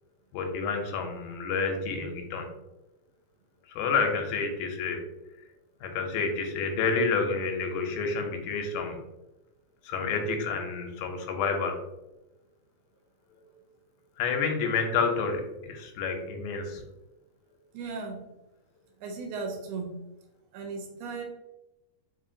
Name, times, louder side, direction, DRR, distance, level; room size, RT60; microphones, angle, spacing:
voice 1, 0.3-2.5 3.7-5.1 5.8-9.0 9.8-11.8 14.2-16.8, left 4 dB, 85° left, 4 dB, 2.1 m, -29 dB
voice 2, 17.7-18.2 19.0-20.0 20.5-21.2, right 4 dB, 85° right, 2 dB, 2.1 m, -36 dB
4.8 x 2.8 x 2.6 m, 0.97 s
omnidirectional pair, 3.5 m